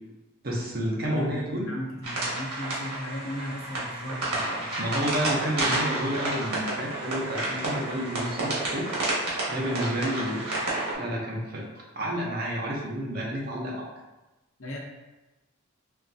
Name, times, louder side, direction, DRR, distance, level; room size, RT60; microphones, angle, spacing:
voice 1, 0.4-1.7 4.8-9.0 9.5-10.5 10.9-11.7 11.9-13.9, equal, 45° right, -3 dB, 0.8 m, -30 dB
voice 2, 1.0-4.8 5.2-5.4 14.6-14.8, equal, 70° left, -2 dB, 0.9 m, -37 dB
sound 1, 2.0-10.9, right 2 dB, 90° right, 1.4 m, -30 dB
4.2 x 3.2 x 2.7 m, 1.1 s
head